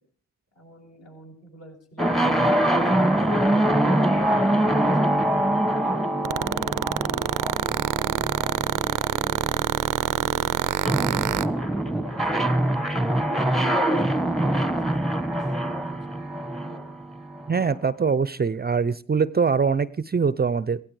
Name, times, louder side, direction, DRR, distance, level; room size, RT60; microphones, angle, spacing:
voice 1, 0.5-3.5 4.1-6.7 7.1-11.0 11.3-13.5 13.8-16.0 16.7-16.9, equal, 50° left, 1 dB, 7.6 m, -46 dB
sound 1, 2.0-17.8, right 1 dB, ahead, 1.3 m, -24 dB
sound 2, 6.2-11.5, right 13 dB, 85° right, 0.6 m, -24 dB
voice 2, 17.5-20.8, right 5 dB, 30° right, 17 dB, 0.7 m, -23 dB
16.5 x 16.5 x 4.9 m, 0.42 s
cardioid pair, 65°, 31 cm